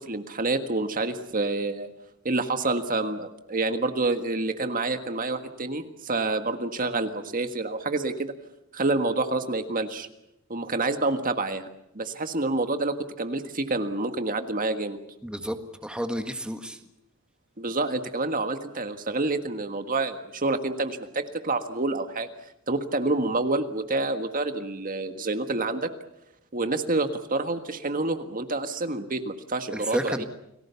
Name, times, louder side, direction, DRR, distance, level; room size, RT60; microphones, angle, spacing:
voice 1, 0.0-1.9 2.3-8.3 8.7-10.1 10.5-11.7 12.0-15.0 17.6-22.3 22.7-25.9 26.5-30.2, right 2 dB, 40° right, 7 dB, 1.6 m, -28 dB
voice 2, 15.2-16.8 29.7-30.2, equal, 5° right, 6 dB, 1.7 m, -31 dB
30.0 x 20.0 x 7.0 m, 0.84 s
head